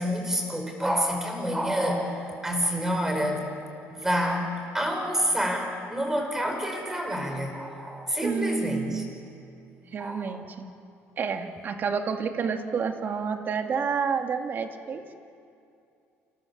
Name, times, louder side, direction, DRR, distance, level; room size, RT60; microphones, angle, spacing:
voice 1, 0.0-3.5 3.9-9.0 10.0-10.5, equal, 10° right, 3 dB, 5.4 m, -28 dB
voice 2, 8.2-9.1 9.9-10.7 11.2-15.1, right 6 dB, 40° right, 5 dB, 2.1 m, -29 dB
29.0 x 27.5 x 7.3 m, 2.5 s
cardioid pair, 135°, 5 cm